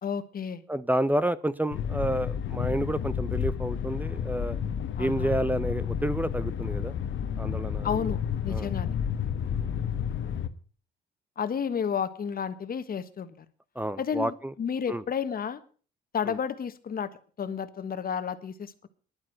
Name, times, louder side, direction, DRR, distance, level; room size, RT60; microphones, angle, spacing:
voice 1, 0.0-0.6 5.0-5.3 7.8-8.2 8.4-9.0 11.4-13.3 14.0-15.6 16.1-17.1 17.4-18.9, left 7 dB, 50° left, 12 dB, 1.4 m, -31 dB
voice 2, 0.7-4.6 5.0-6.9 7.4-8.1 8.5-8.7 9.5-9.7 13.8-14.5 14.9-15.0 16.2-16.4, right 1 dB, 10° right, 16 dB, 0.7 m, -30 dB
sound 1, 1.7-10.5, left 8 dB, 70° left, 1.2 m, -31 dB
10.5 x 9.6 x 7.7 m, 0.42 s
cardioid pair, 90°, 20 cm